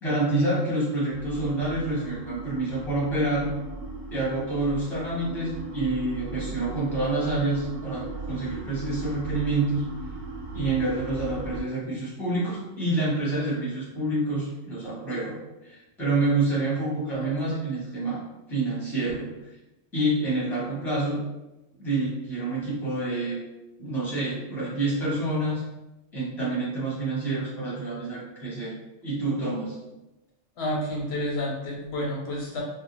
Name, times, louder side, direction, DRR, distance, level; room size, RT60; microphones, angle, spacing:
voice 1, 0.0-3.5 4.1-9.8 10.5-15.3 15.6-18.2 18.5-19.3 19.9-21.2 21.8-23.4 23.8-25.6 26.1-28.7 29.0-29.8, right 2 dB, ahead, -7 dB, 0.7 m, -27 dB
sound 1, 1.1-11.6, right 2 dB, 85° right, 1.0 m, -37 dB
voice 2, 30.6-32.6, left 1 dB, 65° left, -2 dB, 0.7 m, -30 dB
2.5 x 2.0 x 2.9 m, 0.97 s
omnidirectional pair, 1.3 m